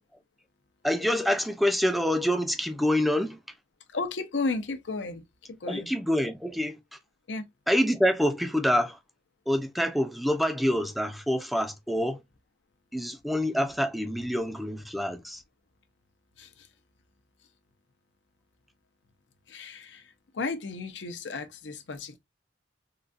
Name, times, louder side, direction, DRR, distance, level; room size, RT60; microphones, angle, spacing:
voice 1, 0.8-3.4 5.7-6.8 7.7-9.0 9.5-12.2 12.9-15.4, equal, ahead, 0.4 m, -26 dB
voice 2, 3.9-5.2 5.5-5.9 7.3-7.4 16.4-16.5 19.5-20.1 20.3-22.2, left 3 dB, 75° left, 0.7 m, -33 dB
3.8 x 2.2 x 2.5 m
head